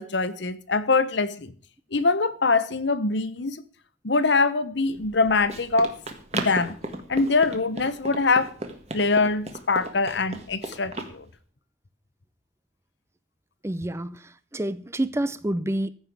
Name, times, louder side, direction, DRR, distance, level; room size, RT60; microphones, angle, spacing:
voice 1, 0.0-1.5 1.9-3.6 4.0-5.9 6.3-6.8 7.1-8.5 8.9-11.3, left 3 dB, 65° left, 1.0 m, -23 dB
Run, 4.9-11.1, right 2 dB, 35° right, 1.7 m, -36 dB
voice 2, 13.6-15.9, right 1 dB, 15° right, 0.5 m, -28 dB
15.0 x 5.8 x 8.3 m
head